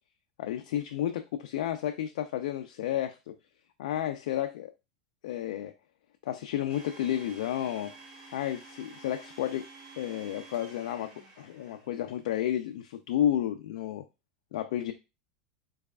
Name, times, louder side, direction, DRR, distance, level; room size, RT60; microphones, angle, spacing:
voice 1, 0.4-3.3 3.8-4.7 5.2-5.7 6.2-7.9 8.3-9.7 10.0-14.0 14.5-14.9, left 11 dB, 70° left, 7 dB, 0.3 m, -31 dB
Domestic sounds home sounds, 6.7-12.2, right 3 dB, 60° right, 1.6 m, -51 dB
3.9 x 3.2 x 2.4 m, 0.26 s
hypercardioid pair, 90°, 4 cm